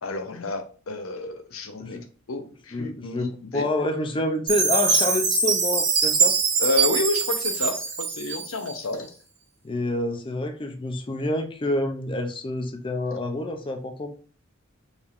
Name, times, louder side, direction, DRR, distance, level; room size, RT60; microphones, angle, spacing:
voice 1, 0.0-3.6 6.6-9.1, left 2 dB, 80° left, 7 dB, 0.8 m, -30 dB
voice 2, 2.7-6.3 9.6-14.1, left 1 dB, 25° left, 5 dB, 0.5 m, -28 dB
Chime, 4.5-8.7, right 5 dB, 55° right, 1.4 m, -23 dB
5.1 x 3.4 x 2.5 m, 0.39 s
head